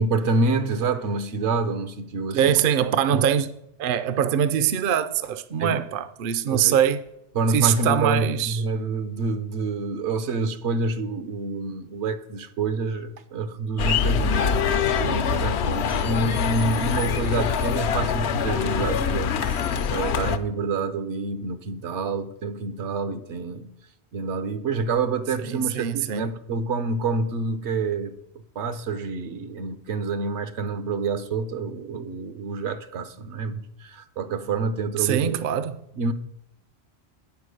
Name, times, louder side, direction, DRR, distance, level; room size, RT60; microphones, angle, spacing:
voice 1, 0.0-2.6 3.1-3.2 5.6-5.8 6.5-6.8 7.3-23.7 24.1-28.2 28.5-35.4 35.9-36.1, right 3 dB, 80° right, 1.1 m, -27 dB
voice 2, 2.3-3.5 3.8-7.0 7.5-8.6 25.5-26.3 35.0-35.8, right 9 dB, 60° right, 0.7 m, -23 dB
sound 1, 13.8-20.4, left 7 dB, 75° left, 0.9 m, -24 dB
8.9 x 6.0 x 6.4 m
omnidirectional pair, 1.2 m